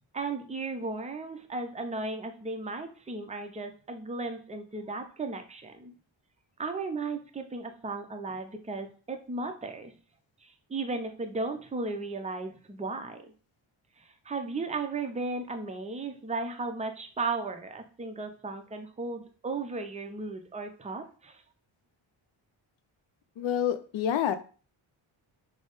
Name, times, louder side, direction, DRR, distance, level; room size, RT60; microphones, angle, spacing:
voice 1, 0.1-5.9 6.6-9.9 10.4-13.2 14.0-21.4, right 3 dB, 15° right, 5 dB, 0.4 m, -35 dB
voice 2, 23.4-24.4, left 9 dB, 70° left, 11 dB, 0.5 m, -27 dB
3.4 x 2.0 x 3.9 m, 0.39 s
cardioid pair, 80°, 48 cm